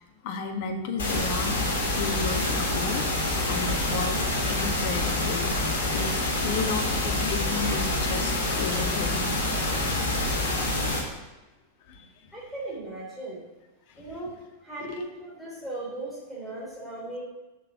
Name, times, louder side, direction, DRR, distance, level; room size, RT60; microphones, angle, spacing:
voice 1, 0.2-9.5 11.9-12.1 14.0-14.1 14.8-15.0, left 4 dB, 50° left, 5 dB, 1.4 m, -33 dB
sound 1, 1.0-11.0, left 2 dB, 65° left, 2.6 m, -27 dB
voice 2, 12.3-13.4 14.0-17.2, right 2 dB, ahead, -8 dB, 3.5 m, -38 dB
7.4 x 6.7 x 6.1 m, 1.1 s
figure-of-eight pair, 90°, 0 cm